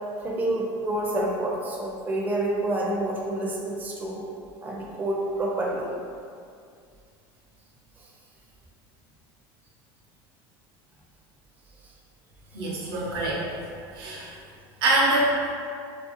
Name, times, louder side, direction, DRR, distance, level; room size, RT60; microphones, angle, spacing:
voice 1, 0.2-4.3 4.6-5.9, right 1 dB, 15° right, -3 dB, 0.4 m, -28 dB
voice 2, 12.5-13.4 13.9-14.3 14.8-15.5, right 2 dB, 80° right, -4 dB, 0.6 m, -24 dB
2.5 x 2.0 x 2.7 m, 2.3 s
supercardioid pair, 100°, 12 cm